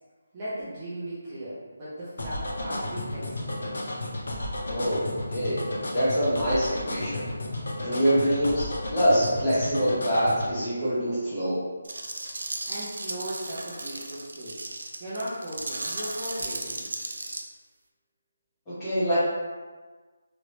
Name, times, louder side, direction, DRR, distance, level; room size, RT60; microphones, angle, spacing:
voice 1, 0.3-3.7 12.7-14.5 15.0-16.8, right 1 dB, 20° right, -11 dB, 0.6 m, -37 dB
sound 1, 2.2-10.5, left 1 dB, 60° left, 0.6 m, -32 dB
voice 2, 4.7-5.6 5.9-7.3 7.8-11.6 18.7-19.2, equal, 15° left, -14 dB, 1.3 m, -25 dB
sound 2, 11.8-17.4, right 2 dB, 80° right, 0.4 m, -35 dB
3.0 x 2.6 x 3.0 m, 1.3 s
hypercardioid pair, 175°, 0 cm